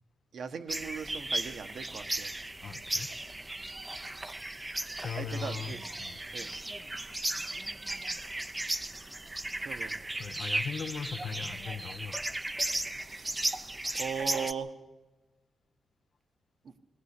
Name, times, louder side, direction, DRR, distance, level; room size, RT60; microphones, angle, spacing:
voice 1, 0.3-2.3 5.2-5.8 6.3-6.5 9.6-10.0 13.1-13.7 14.0-14.7, right 6 dB, 65° right, 7 dB, 1.2 m, -38 dB
sound 1, 0.7-14.5, right 2 dB, 15° right, 0.6 m, -36 dB
voice 2, 2.6-3.1 4.1-4.2 5.0-5.7 6.0-6.2 10.2-12.2, left 6 dB, 60° left, 11 dB, 0.8 m, -38 dB
20.5 x 16.0 x 8.3 m, 1.2 s
wide cardioid pair, 125°, 0 cm